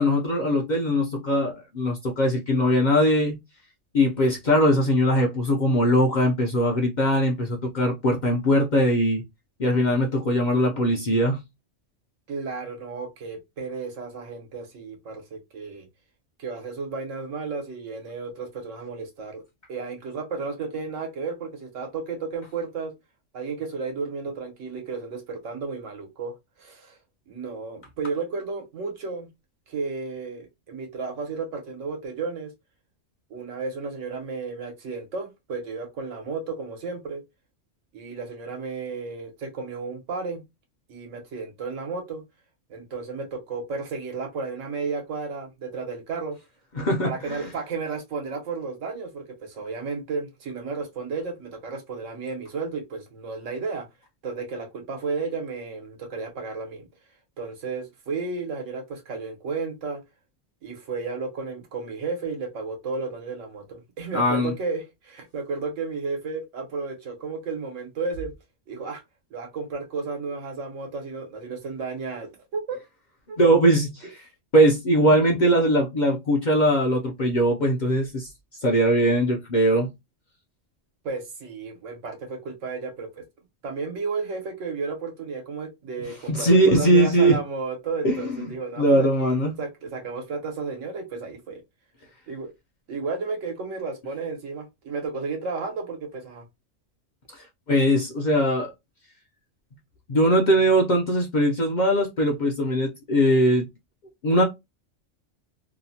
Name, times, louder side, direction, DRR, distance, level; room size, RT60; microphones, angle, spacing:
voice 1, 0.0-3.4 3.9-9.2 9.6-11.4 46.8-47.4 64.1-64.5 73.4-74.1 74.5-78.3 78.6-79.9 86.3-87.4 88.0-88.4 88.8-89.6 97.3-98.7 100.1-103.7 104.2-104.4, equal, 50° left, 0.5 m, -21 dB
voice 2, 12.3-15.9 16.4-19.4 19.7-22.9 23.3-27.0 27.3-29.3 29.7-32.5 33.3-37.2 37.9-40.4 40.9-42.2 42.7-46.4 47.0-53.9 54.2-56.9 57.4-60.0 60.6-68.3 68.7-69.0 69.3-72.8 73.3-73.4 75.0-75.2 81.0-83.3 83.6-91.6 92.3-92.5 92.9-96.4, right 4 dB, 80° right, 1.2 m, -33 dB
2.9 x 2.0 x 2.7 m
omnidirectional pair, 1.3 m